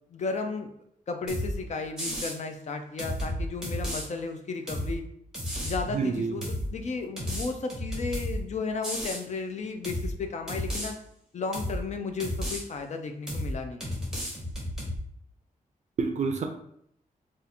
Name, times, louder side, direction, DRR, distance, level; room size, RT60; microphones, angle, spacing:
voice 1, 0.1-0.7 1.1-5.1 5.6-11.0 11.3-13.8, left 4 dB, 55° left, 5 dB, 0.4 m, -34 dB
sound 1, 1.3-1.5 2.0-2.4 3.0-4.0 4.7-4.9 5.3-5.8 6.4-6.7 7.2-8.4 8.8-9.2 9.8-10.1 10.5-10.9 11.5-11.8 12.2-12.6 13.3-13.5 13.8-15.0, equal, 5° right, 0.8 m, -32 dB
voice 2, 5.9-6.4 16.0-16.4, right 4 dB, 55° right, 4 dB, 0.4 m, -28 dB
2.6 x 2.4 x 4.1 m, 0.72 s
wide cardioid pair, 170°, 14 cm